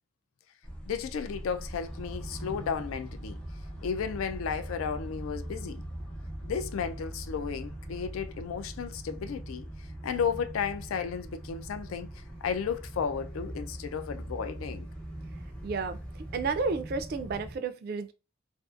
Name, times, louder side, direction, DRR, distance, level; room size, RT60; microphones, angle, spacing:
sound 1, 0.6-17.6, right 1 dB, 5° left, 0.5 m, -41 dB
voice 1, 0.9-3.4 3.8-5.8 6.4-14.9, left 6 dB, 80° left, 0.4 m, -34 dB
voice 2, 15.6-16.0 16.3-18.1, right 4 dB, 45° right, 0.3 m, -31 dB
2.5 x 2.4 x 2.3 m
head